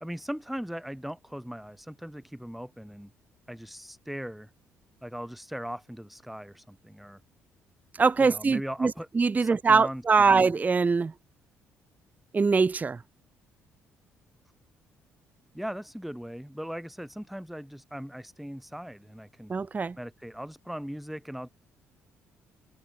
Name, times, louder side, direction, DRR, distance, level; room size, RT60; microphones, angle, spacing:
voice 1, 0.0-3.1 3.5-4.5 5.0-7.2 8.2-9.1 9.4-10.5 15.5-19.5 20.0-21.5, equal, ahead, 1.6 m, -39 dB
voice 2, 8.0-11.1 12.3-13.0 19.5-20.0, right 4 dB, 25° right, 0.4 m, -23 dB
hypercardioid pair, 50°, 6 cm